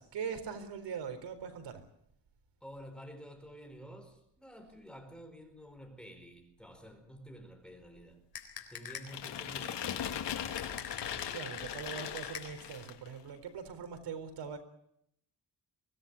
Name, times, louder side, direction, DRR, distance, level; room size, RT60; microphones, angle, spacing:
voice 1, 0.0-1.8 11.3-14.6, right 6 dB, 85° right, 4.2 m, -41 dB
voice 2, 2.6-8.2 8.6-10.2, equal, ahead, 4.6 m, -50 dB
sound 1, 8.3-9.3 10.6-12.8, left 8 dB, 65° left, 4.2 m, -44 dB
sound 2, 9.1-13.1, left 9 dB, 85° left, 2.6 m, -39 dB
24.0 x 18.0 x 8.3 m
cardioid pair, 135°, 41 cm